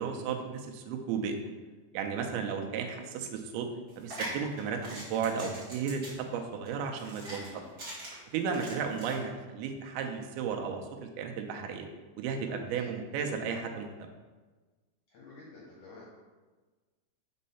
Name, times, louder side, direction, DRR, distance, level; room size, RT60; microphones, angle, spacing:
voice 1, 0.0-1.4 1.9-3.7 4.0-7.4 8.3-11.9 12.2-13.9, right 6 dB, 80° right, 3 dB, 2.4 m, -34 dB
sound 1, 3.9-9.2, right 1 dB, 35° right, 1.5 m, -43 dB
voice 2, 7.3-7.7 12.7-12.9 15.1-16.1, left 3 dB, 70° left, -5 dB, 1.9 m, -50 dB
5.5 x 4.2 x 5.5 m, 1.3 s
omnidirectional pair, 4.8 m